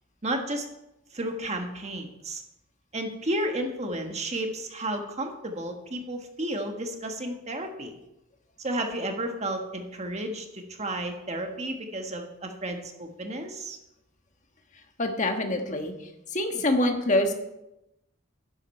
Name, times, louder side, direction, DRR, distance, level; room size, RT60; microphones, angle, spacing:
voice 1, 0.2-0.7 1.1-2.4 2.9-8.0 8.6-13.8, right 1 dB, 30° right, 4 dB, 1.4 m, -32 dB
voice 2, 15.0-15.9 16.3-17.3, left 1 dB, 35° left, 4 dB, 1.4 m, -25 dB
12.5 x 10.5 x 4.4 m, 0.89 s
head